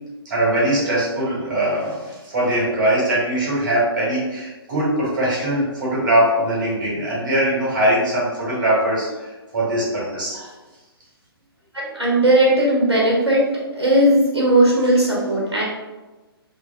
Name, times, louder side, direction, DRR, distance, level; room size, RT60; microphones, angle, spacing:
voice 1, 0.2-9.3 9.5-10.5, right 1 dB, 50° right, -6 dB, 1.2 m, -21 dB
voice 2, 11.7-13.5 13.7-15.6, right 1 dB, 85° right, -5 dB, 0.7 m, -17 dB
2.5 x 2.2 x 2.3 m, 1.2 s
figure-of-eight pair, 130°, 13 cm